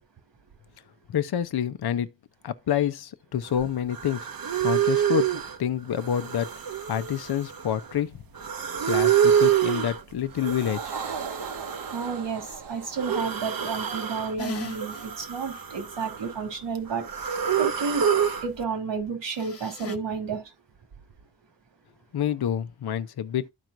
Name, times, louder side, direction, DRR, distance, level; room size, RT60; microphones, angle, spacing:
voice 1, 1.1-2.1 2.4-4.3 4.6-6.5 6.9-8.2 8.8-10.9 22.1-23.5, left 9 dB, 60° left, 0.7 m, -28 dB
sound 1, 3.6-3.7 3.9-5.6 6.0-8.0 8.3-10.0 10.4-12.3 12.9-14.3 14.6-16.4 16.7-18.5, right 9 dB, 55° right, 0.9 m, -27 dB
sound 2, 10.3-14.9, right 6 dB, 70° right, 1.2 m, -39 dB
voice 2, 11.9-18.1 18.4-20.5, right 5 dB, 85° right, 2.8 m, -31 dB
sound 3, 14.4-15.1 15.5-15.6 19.3-20.0, left 4 dB, 35° left, 1.0 m, -37 dB
13.0 x 4.6 x 2.5 m
wide cardioid pair, 105°, 42 cm